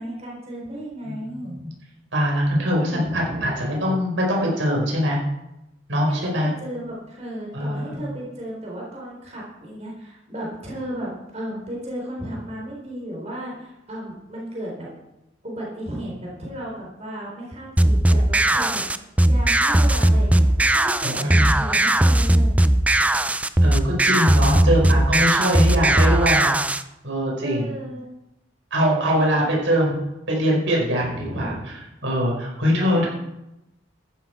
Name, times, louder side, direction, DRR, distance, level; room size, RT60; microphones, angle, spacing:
voice 1, 0.0-1.6 2.5-3.6 6.1-14.9 15.4-18.8 19.2-23.2 27.4-28.0 29.0-29.5 31.0-31.5 32.7-33.1, right 1 dB, 35° right, -3 dB, 4.2 m, -34 dB
voice 2, 1.0-1.7 2.1-5.2 5.9-6.5 7.5-8.0 21.0-21.5 23.6-26.8 27.0-27.7 28.7-30.0 30.3-31.7 32.0-33.1, equal, 75° right, -2 dB, 5.1 m, -22 dB
sound 1, 17.8-26.8, right 1 dB, 5° right, 0.4 m, -18 dB
14.0 x 12.0 x 4.6 m, 0.91 s
head